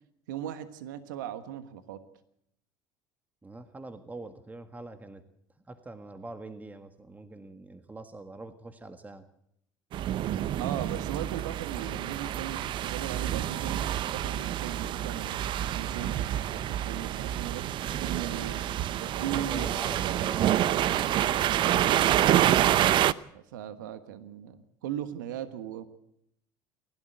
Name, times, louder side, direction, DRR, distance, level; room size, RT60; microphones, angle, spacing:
voice 1, 0.3-2.0 10.6-16.2 16.5-17.7 18.0-19.8 23.3-25.8, right 10 dB, 85° right, 10 dB, 1.4 m, -38 dB
voice 2, 3.4-5.2 5.7-9.3 17.8-22.7, right 2 dB, 15° right, 9 dB, 1.6 m, -45 dB
sound 1, 9.9-23.1, right 12 dB, 55° right, 0.7 m, -27 dB
28.5 x 12.0 x 7.9 m, 0.74 s
hypercardioid pair, 75°, 10 cm